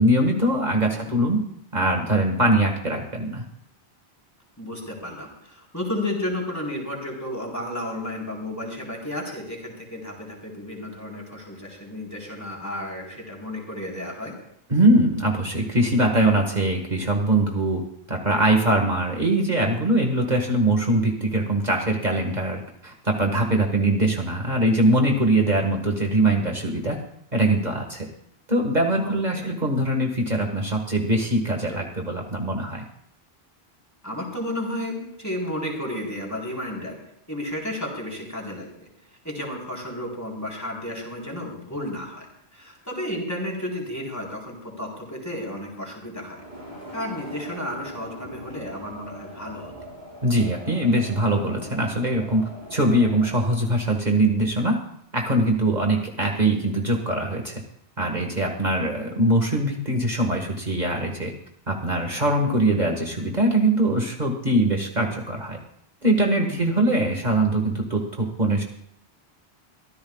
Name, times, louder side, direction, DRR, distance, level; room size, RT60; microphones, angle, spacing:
voice 1, 0.0-1.4 1.7-3.4 14.7-17.8 18.1-27.0 27.3-28.1 28.5-32.9 50.2-52.4 52.7-54.8 55.1-57.5 58.0-61.3 61.7-65.6 66.0-68.6, right 1 dB, 45° right, 1 dB, 1.9 m, -22 dB
voice 2, 4.6-14.3 29.0-29.6 34.0-37.0 37.3-38.9 39.2-42.3 42.5-46.4 46.9-49.7 66.4-66.6, left 1 dB, 15° left, -2 dB, 4.0 m, -32 dB
sound 1, 46.3-53.5, equal, 75° right, 6.2 m, -41 dB
24.0 x 15.0 x 2.4 m, 0.71 s
omnidirectional pair, 1.1 m